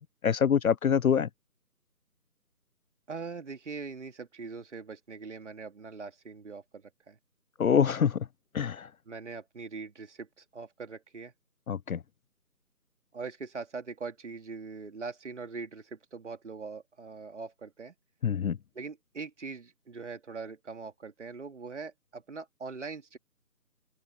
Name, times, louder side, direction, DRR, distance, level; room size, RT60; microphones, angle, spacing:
voice 1, 0.2-1.3 7.6-8.3 8.5-8.9 11.7-12.0 18.2-18.6, left 7 dB, 65° left, 0.5 m, -25 dB
voice 2, 3.1-7.2 9.1-11.3 13.1-17.9 18.7-23.2, right 4 dB, 45° right, 3.0 m, -42 dB
figure-of-eight pair, 160°, 47 cm